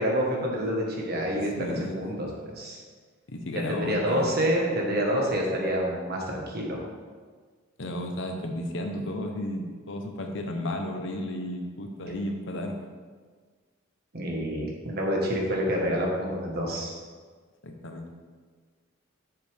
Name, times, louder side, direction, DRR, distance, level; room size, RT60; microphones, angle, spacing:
voice 1, 0.0-1.5 1.9-2.8 3.7-6.8 14.1-16.9, equal, 50° right, -1 dB, 1.5 m, -27 dB
voice 2, 1.6-1.9 3.3-4.4 7.8-12.8 17.6-18.1, left 1 dB, 65° left, 4 dB, 0.9 m, -33 dB
7.7 x 6.8 x 3.5 m, 1.5 s
head